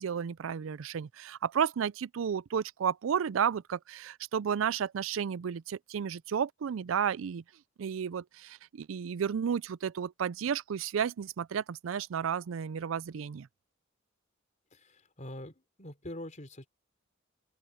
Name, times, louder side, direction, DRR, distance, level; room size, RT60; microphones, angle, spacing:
voice 1, 0.0-7.4 7.8-13.5, right 7 dB, 85° right, 0.4 m, -32 dB
voice 2, 14.7-16.7, left 1 dB, 40° left, 3.8 m, -44 dB
open air
head